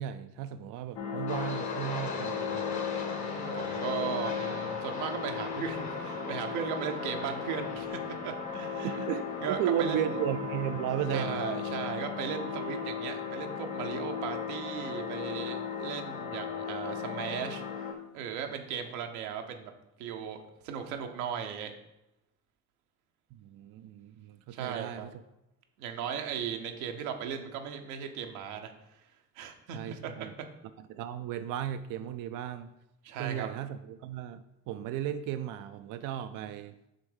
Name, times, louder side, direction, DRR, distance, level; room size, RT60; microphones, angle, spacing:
voice 1, 0.0-2.8 8.8-11.4 23.3-25.1 29.7-30.3 30.8-32.7 33.2-36.7, right 10 dB, 50° right, 9 dB, 0.4 m, -35 dB
sound 1, 1.0-17.9, left 6 dB, 65° left, 1.1 m, -36 dB
sound 2, 1.3-16.2, left 3 dB, 40° left, 1.2 m, -42 dB
voice 2, 3.2-9.1 9.4-10.2 11.1-19.7 20.0-21.7 24.5-25.1 25.8-28.7 29.4-30.3 33.0-33.5, right 7 dB, 75° right, 4 dB, 0.9 m, -37 dB
6.6 x 3.4 x 4.9 m, 0.90 s
hypercardioid pair, 50°, 44 cm